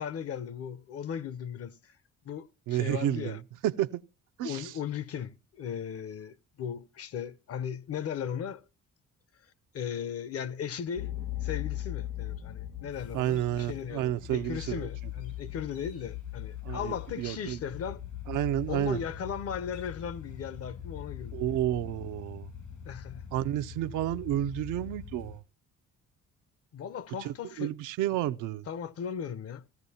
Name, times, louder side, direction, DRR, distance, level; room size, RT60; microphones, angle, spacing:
voice 1, 0.0-1.9 2.2-3.4 4.4-8.6 9.7-18.0 18.7-21.4 22.9-23.2 26.7-27.7 28.7-29.8, left 8 dB, 50° left, 0.7 m, -37 dB
voice 2, 2.7-4.0 4.4-4.7 13.1-14.9 16.6-17.6 18.3-19.0 21.3-22.5 23.3-25.4 27.2-28.6, right 13 dB, 85° right, 0.5 m, -31 dB
sound 1, 11.0-25.4, left 11 dB, 70° left, 1.5 m, -40 dB
sound 2, 12.9-25.4, left 4 dB, 85° left, 6.8 m, -65 dB
15.5 x 15.0 x 2.7 m
cardioid pair, 90°, 30 cm